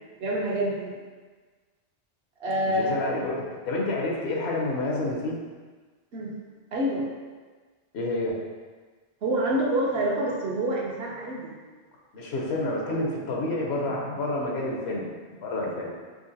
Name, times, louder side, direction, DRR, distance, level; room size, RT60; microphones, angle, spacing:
voice 1, 0.2-0.9 2.4-3.0 6.1-6.4 6.7-7.0 9.2-11.6, right 1 dB, 70° right, -3 dB, 1.0 m, -27 dB
voice 2, 2.7-5.4 7.9-8.4 12.1-15.1 15.4-15.9, left 2 dB, 75° left, -2 dB, 0.9 m, -29 dB
3.7 x 2.8 x 2.7 m, 1.4 s
omnidirectional pair, 1.1 m